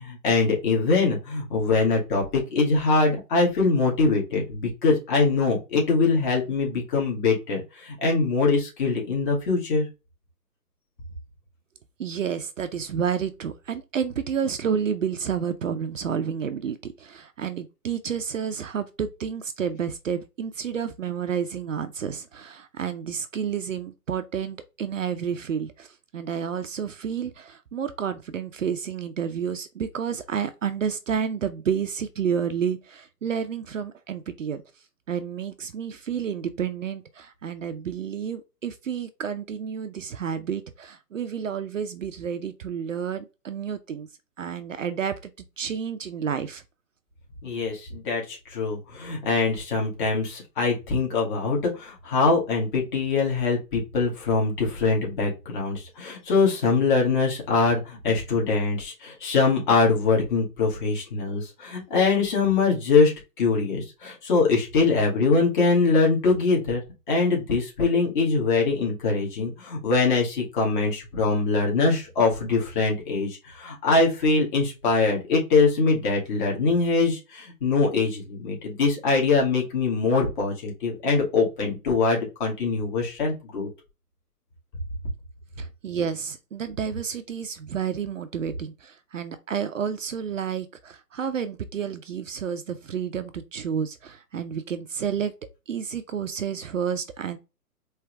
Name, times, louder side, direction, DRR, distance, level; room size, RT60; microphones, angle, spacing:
voice 1, 0.0-9.9 47.4-66.8 67.1-83.7, left 4 dB, 30° left, 2.1 m, -23 dB
voice 2, 12.0-34.6 35.1-44.1 44.4-45.3 45.6-46.6 85.6-95.3 95.7-97.4, right 7 dB, 55° right, 0.6 m, -30 dB
4.6 x 3.2 x 3.4 m
hypercardioid pair, 145°, 47 cm